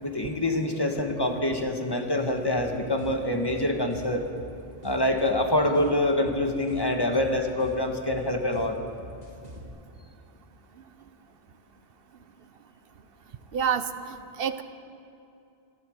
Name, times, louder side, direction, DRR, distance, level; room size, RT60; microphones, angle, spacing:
voice 1, 0.0-4.3 4.8-8.8, left 1 dB, 25° left, 3 dB, 1.4 m, -26 dB
sound 1, 2.3-9.7, equal, 40° right, 2.0 m, -45 dB
voice 2, 13.5-14.6, right 7 dB, 70° right, 11 dB, 0.9 m, -28 dB
14.5 x 12.5 x 7.9 m, 2.6 s
omnidirectional pair, 1.0 m